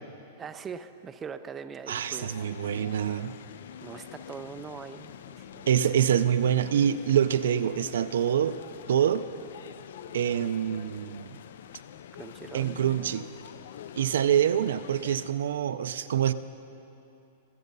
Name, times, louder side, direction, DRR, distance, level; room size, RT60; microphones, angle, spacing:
voice 1, 0.4-2.9 3.8-6.1 12.1-13.2, right 6 dB, 10° right, 9 dB, 0.3 m, -42 dB
voice 2, 1.9-3.3 5.7-8.6 8.9-9.2 10.1-11.4 12.5-13.3 14.0-16.3, right 9 dB, 80° right, 12 dB, 0.5 m, -25 dB
sound 1, 2.0-15.3, left 9 dB, 65° left, 0.4 m, -46 dB
22.0 x 8.4 x 5.4 m, 2.9 s
supercardioid pair, 175°, 0 cm